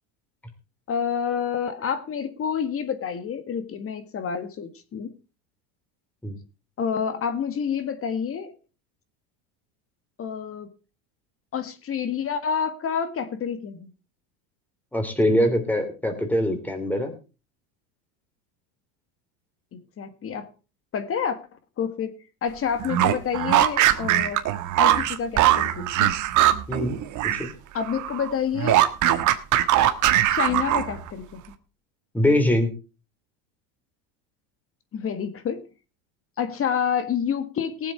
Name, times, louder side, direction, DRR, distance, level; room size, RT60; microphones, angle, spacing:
voice 1, 0.9-5.1 6.8-8.5 10.2-10.7 11.5-13.9 19.7-20.5 20.9-21.4 21.8-22.1 22.4-24.4 24.8-26.1 27.7-28.8 30.3-31.4 34.9-35.6 36.4-37.9, left 7 dB, 30° left, 11 dB, 1.6 m, -28 dB
voice 2, 14.9-17.1 26.7-26.9 27.2-27.5 32.1-32.7, left 1 dB, 5° left, 5 dB, 3.1 m, -23 dB
sound 1, 22.8-27.5 27.8-31.1, right 13 dB, 45° right, 1.4 m, -21 dB
19.0 x 7.7 x 4.5 m, 0.32 s
supercardioid pair, 125°, 41 cm